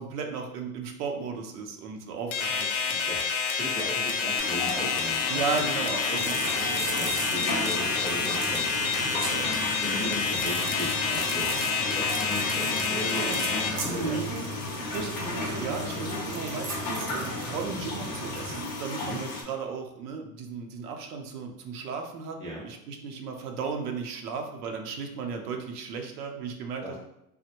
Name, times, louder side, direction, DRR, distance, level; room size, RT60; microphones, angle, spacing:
voice 1, 0.0-3.2 5.3-6.3 15.1-22.4 22.6-27.0, right 5 dB, 90° right, 4 dB, 0.7 m, -35 dB
sound 1, 2.3-13.7, left 5 dB, 70° left, 0.7 m, -28 dB
voice 2, 3.1-5.4 6.2-6.4 6.9-8.7 9.0-14.4 19.0-19.2 22.4-22.6 26.8-26.9, equal, 15° right, -6 dB, 0.5 m, -37 dB
sound 2, 4.4-19.4, left 2 dB, 35° left, 0.4 m, -35 dB
sound 3, 6.1-18.6, right 3 dB, 55° right, 0.6 m, -36 dB
3.3 x 2.1 x 2.8 m, 0.83 s
supercardioid pair, 170°, 45 cm